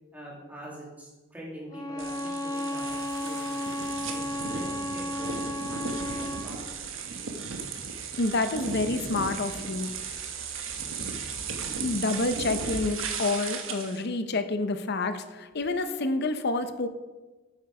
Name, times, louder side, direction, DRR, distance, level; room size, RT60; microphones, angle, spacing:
voice 1, 0.1-6.6, right 1 dB, 10° right, -5 dB, 2.8 m, -44 dB
Bowed string instrument, 1.7-6.6, left 1 dB, 20° left, 0.7 m, -33 dB
sound 1, 2.0-14.0, right 5 dB, 85° right, 1.2 m, -36 dB
Bathtub (filling or washing) / Splash splatter, 2.5-5.1 6.1-6.2 7.2-7.3, left 3 dB, 85° left, 2.4 m, -51 dB
voice 2, 8.1-9.9 11.8-16.9, left 2 dB, 55° left, 10 dB, 0.7 m, -28 dB
8.9 x 7.9 x 4.8 m, 1.2 s
head